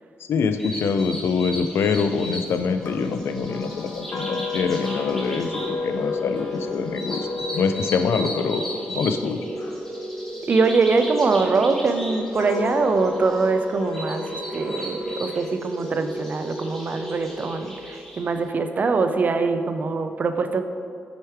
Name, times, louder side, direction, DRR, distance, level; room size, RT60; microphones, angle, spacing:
voice 1, 0.3-8.6 8.9-9.4, left 5 dB, 80° left, 9 dB, 0.3 m, -25 dB
sound 1, 0.6-18.3, equal, 10° left, 1.1 m, -37 dB
sound 2, 2.8-11.0 11.7-15.2, left 5 dB, 55° left, 0.7 m, -34 dB
sound 3, 5.1-18.2, right 1 dB, 20° right, 0.8 m, -35 dB
voice 2, 10.4-14.2 14.5-20.6, right 4 dB, 45° right, 8 dB, 0.4 m, -23 dB
6.5 x 3.2 x 4.6 m, 2.4 s
wide cardioid pair, 115°, 4 cm